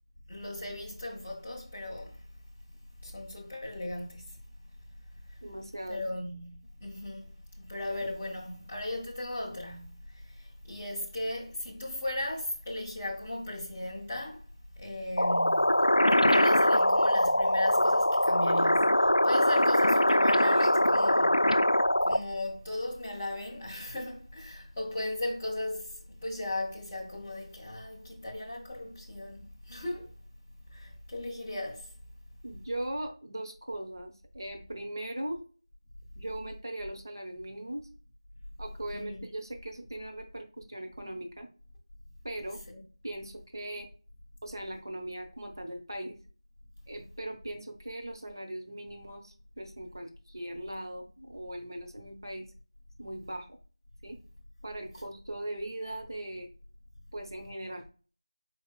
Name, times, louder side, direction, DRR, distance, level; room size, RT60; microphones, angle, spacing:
voice 1, 0.3-2.2 3.0-4.4 5.9-14.4 14.7-21.5 22.0-30.1 30.7-31.9 38.9-39.2 42.7-42.8, left 1 dB, 5° left, 0.5 m, -37 dB
voice 2, 5.4-6.0 32.4-35.4 36.2-37.9 38.6-41.5 42.2-42.6 43.0-43.9 44.4-46.2 46.9-52.5 53.0-53.5 54.0-54.2 54.6-56.5 57.1-57.8, right 1 dB, 45° right, 0.8 m, -39 dB
sound 1, 15.2-22.2, left 1 dB, 90° left, 0.4 m, -23 dB
4.9 x 4.5 x 2.2 m
figure-of-eight pair, 175°, 3 cm